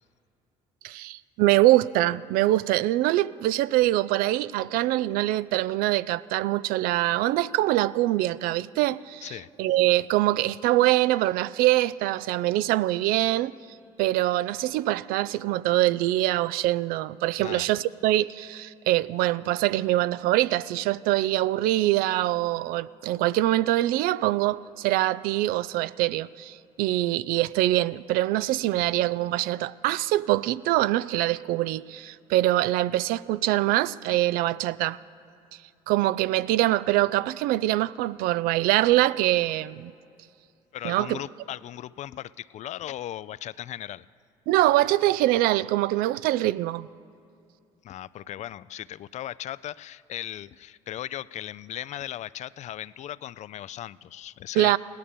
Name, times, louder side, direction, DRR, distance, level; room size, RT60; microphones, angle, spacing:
voice 1, 0.8-13.5 14.0-35.0 35.9-39.9 40.8-41.2 44.5-46.9 54.6-54.8, right 16 dB, 70° right, 18 dB, 0.4 m, -24 dB
voice 2, 17.4-17.7 28.8-28.9 40.7-44.1 47.8-54.7, left 12 dB, 50° left, 19 dB, 0.4 m, -37 dB
17.0 x 11.5 x 6.9 m, 2.5 s
supercardioid pair, 75°, 16 cm